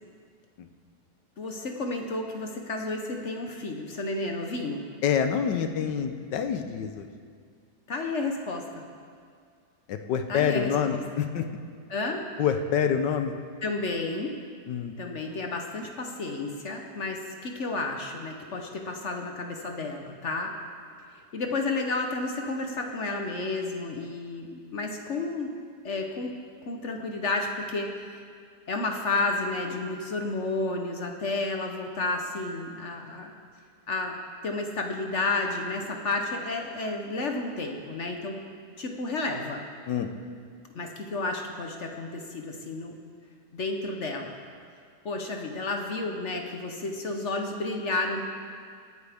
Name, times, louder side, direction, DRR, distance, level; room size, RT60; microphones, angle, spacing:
voice 1, 1.4-4.8 7.9-8.8 10.3-11.2 11.9-12.2 13.6-14.3 15.0-20.5 21.3-25.5 25.8-26.3 26.6-28.2 28.7-33.3 33.9-34.1 34.4-38.4 38.8-39.6 40.7-43.0 43.5-44.3 45.0-48.2, left 3 dB, 50° left, 3 dB, 1.1 m, -31 dB
voice 2, 5.0-7.1 9.9-11.4 12.4-13.3 14.7-15.0 39.9-40.1, left 7 dB, 85° left, 7 dB, 1.4 m, -27 dB
21.5 x 9.5 x 3.5 m, 2.1 s
omnidirectional pair, 1.8 m